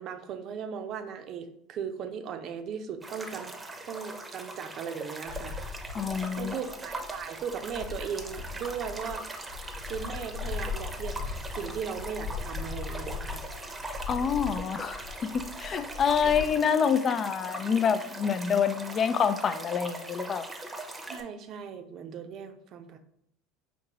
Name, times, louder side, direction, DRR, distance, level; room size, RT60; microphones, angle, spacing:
voice 1, 0.0-3.6 3.9-5.6 6.0-9.3 9.9-13.5 16.2-16.7 21.1-23.0, right 7 dB, 50° right, 7 dB, 0.6 m, -38 dB
sound 1, 3.0-21.2, right 2 dB, 20° right, 0.8 m, -41 dB
sound 2, 5.2-16.5, left 6 dB, 80° left, 1.1 m, -39 dB
voice 2, 5.9-6.6 14.1-20.5, left 7 dB, 35° left, 12 dB, 0.4 m, -27 dB
5.3 x 2.8 x 2.9 m, 0.75 s
hypercardioid pair, 75°, 0 cm